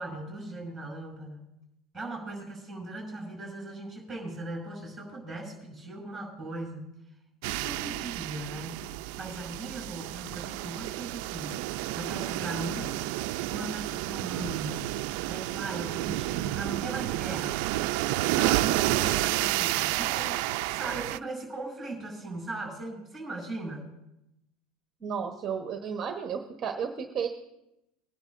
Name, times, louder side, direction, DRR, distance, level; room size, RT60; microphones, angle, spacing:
voice 1, 0.0-1.5 1.9-7.0 7.6-8.8 9.2-11.6 11.9-13.0 13.5-14.9 15.3-17.6 18.3-24.0, right 2 dB, ahead, -2 dB, 5.7 m, -38 dB
sound 1, 7.4-21.2, right 17 dB, 65° right, 0.3 m, -30 dB
voice 2, 25.0-27.3, right 7 dB, 25° right, 3 dB, 1.0 m, -33 dB
22.5 x 10.5 x 2.6 m, 0.87 s
cardioid pair, 160°, 0 cm